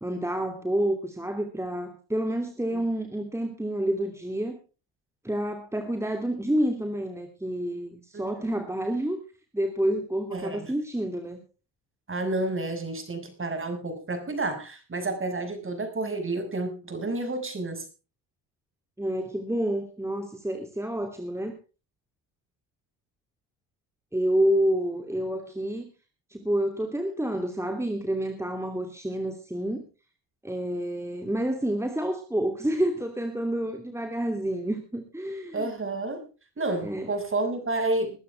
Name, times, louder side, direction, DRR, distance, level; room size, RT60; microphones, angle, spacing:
voice 1, 0.0-4.6 5.2-9.2 9.5-11.4 19.0-21.5 24.1-25.9 26.3-29.8 30.4-35.7 36.8-37.1, right 1 dB, 5° right, 5 dB, 2.9 m, -28 dB
voice 2, 8.1-8.5 10.3-10.7 12.1-17.9 35.5-36.3 36.6-38.2, right 2 dB, 30° right, 7 dB, 6.1 m, -30 dB
21.5 x 12.0 x 3.4 m, 0.34 s
supercardioid pair, 75°, 43 cm